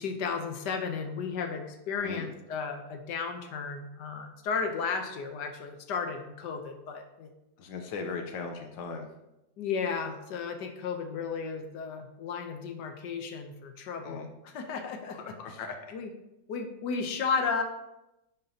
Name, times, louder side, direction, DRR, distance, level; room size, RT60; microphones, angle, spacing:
voice 1, 0.0-7.3 9.6-15.6 15.9-16.1 16.5-17.6, left 5 dB, 70° left, 6 dB, 1.4 m, -34 dB
voice 2, 7.6-9.1 14.0-14.3 15.1-15.8, left 4 dB, 90° left, 4 dB, 1.6 m, -38 dB
10.5 x 6.1 x 2.8 m, 0.92 s
omnidirectional pair, 2.0 m